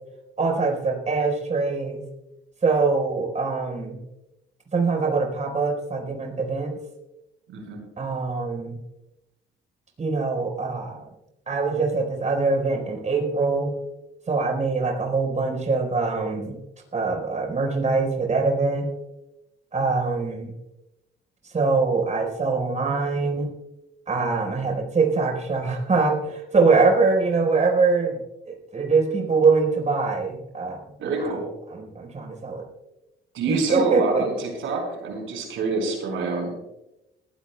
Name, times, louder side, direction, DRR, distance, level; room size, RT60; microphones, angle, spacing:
voice 1, 0.4-2.0 2.6-4.0 4.7-6.7 8.0-8.8 10.0-11.1 11.5-13.8 14.3-16.6 16.9-18.9 19.7-20.5 21.5-23.5 24.1-28.2 28.5-30.8 31.2-31.4 31.7-32.6 33.5-34.2, right 4 dB, 35° right, 0 dB, 4.5 m, -23 dB
voice 2, 7.5-7.8 31.0-31.4 33.3-36.5, right 3 dB, 80° right, 2 dB, 4.8 m, -26 dB
20.0 x 15.5 x 2.3 m, 0.95 s
cardioid pair, 90°, 20 cm